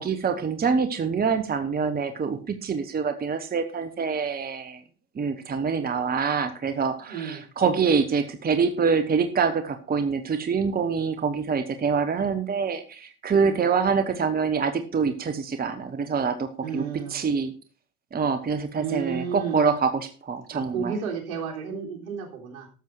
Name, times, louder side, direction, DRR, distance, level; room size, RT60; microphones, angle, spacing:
voice 1, 0.0-4.8 5.2-16.8 17.1-17.5 18.1-19.9 20.2-20.9, right 5 dB, 20° right, 9 dB, 1.3 m, -25 dB
voice 2, 7.1-7.4 13.4-13.6 16.6-17.2 18.8-19.5 20.5-22.7, right 7 dB, 70° right, 2 dB, 3.6 m, -32 dB
13.0 x 7.5 x 4.8 m, 0.37 s
hypercardioid pair, 85°, 45 cm